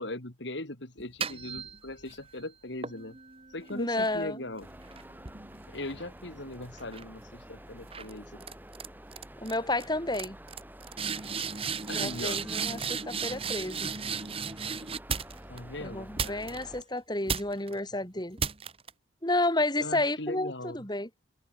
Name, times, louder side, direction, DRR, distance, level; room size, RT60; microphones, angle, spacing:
voice 1, 0.0-3.2 3.5-4.7 5.7-8.4 11.9-12.4 15.5-16.6 19.8-20.8, left 2 dB, 65° left, 3.1 m, -40 dB
sound 1, 1.0-2.2 2.8-6.4 6.8-7.2 7.9-8.1 8.4-8.9 9.1-9.5 9.8-9.9 10.1-15.6 16.2-16.8 17.3-17.7 18.4-18.9, right 6 dB, 30° right, 1.8 m, -35 dB
voice 2, 3.7-4.4 9.4-10.4 11.9-13.9 15.8-18.4 19.2-21.1, left 2 dB, 20° left, 4.5 m, -31 dB
sound 2, 4.6-16.8, right 1 dB, 10° right, 6.1 m, -49 dB
head